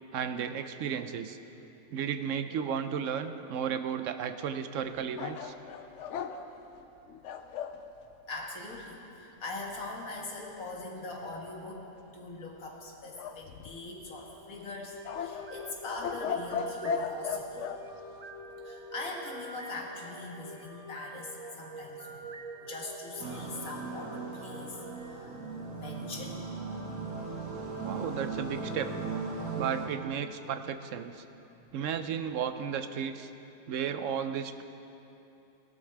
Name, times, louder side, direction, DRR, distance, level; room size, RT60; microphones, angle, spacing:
voice 1, 0.1-1.4 1.9-5.5 27.8-28.9 29.5-31.2 31.7-33.3 33.7-34.6, right 8 dB, 70° right, 9 dB, 0.9 m, -34 dB
sound 1, 5.2-7.8 13.2-14.0 15.0-17.8, left 6 dB, 65° left, 0.9 m, -36 dB
voice 2, 8.3-11.8 12.1-17.7 18.6-22.3 22.6-25.4 25.7-26.4 31.6-31.8, left 2 dB, 85° left, -1 dB, 2.1 m, -42 dB
sound 2, 14.2-26.4, right 2 dB, 45° right, 0.5 m, -46 dB
sound 3, 23.2-29.9, right 4 dB, 90° right, 2.0 m, -38 dB
17.5 x 12.0 x 3.4 m, 2.9 s
omnidirectional pair, 1.4 m